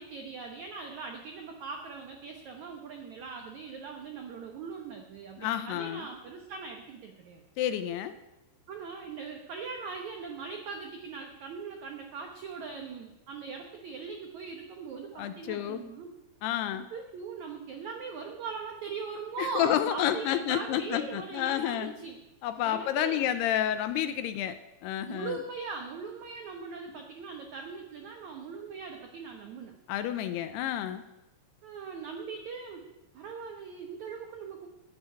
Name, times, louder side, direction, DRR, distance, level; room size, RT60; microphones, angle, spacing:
voice 1, 0.0-7.4 8.7-16.1 16.7-22.2 22.6-23.3 25.1-29.7 31.6-32.8 33.1-34.7, right 5 dB, 85° right, 3 dB, 1.6 m, -40 dB
voice 2, 5.4-6.1 7.6-8.1 15.2-15.8 16.4-16.9 19.4-21.9 22.4-25.4 29.9-31.0, left 11 dB, 80° left, 11 dB, 2.5 m, -30 dB
14.5 x 7.0 x 9.7 m, 0.99 s
omnidirectional pair, 5.1 m